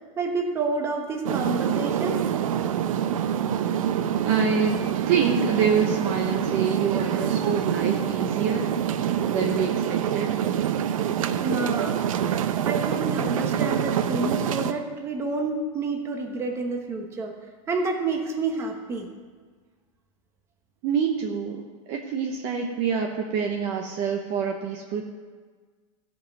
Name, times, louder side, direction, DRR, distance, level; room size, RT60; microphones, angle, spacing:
voice 1, 0.2-2.2 11.3-12.0 12.6-17.3 17.7-19.1, right 3 dB, 15° right, 2 dB, 1.1 m, -29 dB
sound 1, 1.2-14.7, right 9 dB, 85° right, 0.7 m, -26 dB
voice 2, 4.2-4.8 5.1-8.7 9.3-10.3 20.8-21.6 21.9-25.0, right 6 dB, 35° right, 2 dB, 0.9 m, -26 dB
15.0 x 5.5 x 5.9 m, 1.5 s
supercardioid pair, 165°, 17 cm